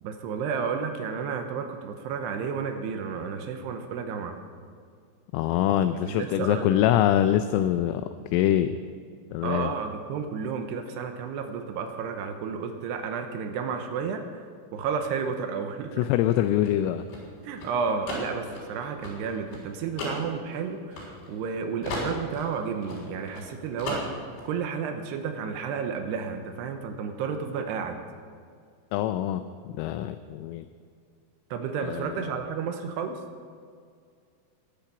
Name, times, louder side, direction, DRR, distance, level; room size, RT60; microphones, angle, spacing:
voice 1, 0.0-4.4 5.9-6.8 9.4-14.5 14.7-16.1 17.4-28.0 31.5-33.2, right 6 dB, 75° right, 6 dB, 2.6 m, -32 dB
voice 2, 5.3-8.0 8.3-8.8 9.3-9.7 16.0-17.0 28.9-29.4 29.7-30.7 31.8-32.2, left 12 dB, 85° left, 9 dB, 3.1 m, -24 dB
sound 1, 16.2-21.5 21.8-23.5 23.8-24.5, left 2 dB, 70° left, 6.2 m, -36 dB
21.0 x 9.0 x 5.9 m, 2.1 s
omnidirectional pair, 5.8 m